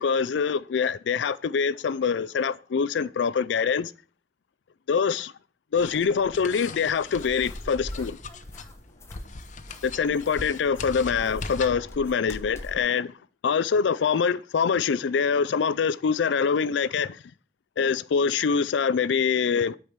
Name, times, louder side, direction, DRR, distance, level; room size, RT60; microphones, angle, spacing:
voice 1, 0.0-3.9 4.9-5.3 5.7-8.2 9.8-13.1 13.4-17.2 17.8-19.8, left 6 dB, 80° left, 0.4 m, -24 dB
sound 1, 5.8-11.9, left 4 dB, 40° left, 0.7 m, -41 dB
sound 2, 7.1-12.8, equal, 15° left, 1.0 m, -42 dB
8.5 x 4.7 x 7.2 m
head